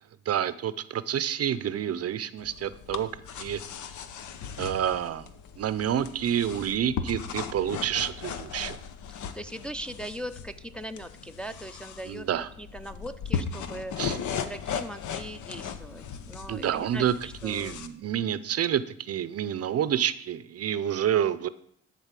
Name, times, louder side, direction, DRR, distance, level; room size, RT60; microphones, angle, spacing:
voice 1, 0.3-3.1 3.4-3.6 4.6-5.3 5.6-8.8 12.1-12.5 14.0-14.2 16.5-17.1 17.4-21.5, right 10 dB, 55° right, 15 dB, 0.6 m, -28 dB
sound 1, 2.4-17.9, left 7 dB, 75° left, 0.8 m, -37 dB
voice 2, 9.3-17.8, right 1 dB, 5° left, 6 dB, 0.5 m, -40 dB
11.5 x 4.1 x 7.4 m, 0.65 s
cardioid pair, 90°, 30 cm